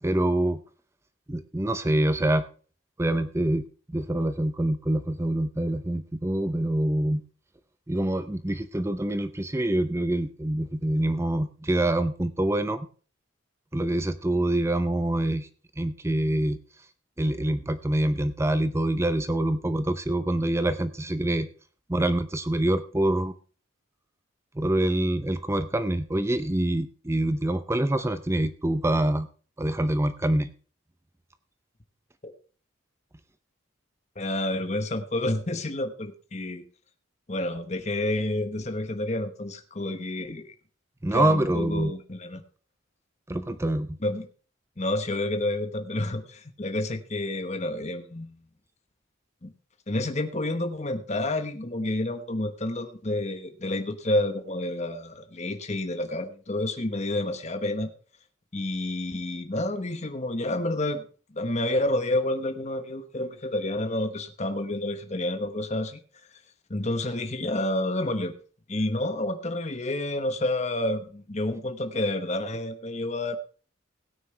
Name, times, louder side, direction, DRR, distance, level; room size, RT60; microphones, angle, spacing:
voice 1, 0.0-0.6 1.3-2.4 3.0-3.6 3.9-7.2 7.9-12.9 13.7-15.5 15.8-16.6 17.2-21.5 21.9-23.3 24.5-29.3 29.6-30.5 41.0-41.9 43.3-44.0, right 1 dB, 15° right, 12 dB, 0.5 m, -25 dB
voice 2, 34.2-36.6 37.3-40.5 41.1-42.4 44.0-44.3 44.8-48.4 49.4-49.5 49.9-57.9 58.5-61.1 61.3-66.0 66.7-68.3 68.7-73.4, left 1 dB, 35° left, 7 dB, 1.1 m, -29 dB
17.0 x 9.4 x 3.3 m, 0.38 s
head